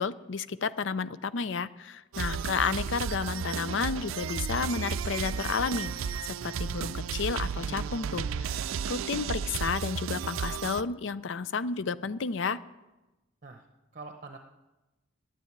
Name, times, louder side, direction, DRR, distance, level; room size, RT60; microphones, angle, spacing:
voice 1, 0.0-5.9 6.2-12.6, left 5 dB, 65° left, 16 dB, 0.5 m, -32 dB
sound 1, 2.1-10.8, right 6 dB, 90° right, 0.4 m, -33 dB
voice 2, 13.9-14.4, right 3 dB, 40° right, 5 dB, 0.8 m, -45 dB
10.5 x 9.1 x 9.2 m, 1.1 s
head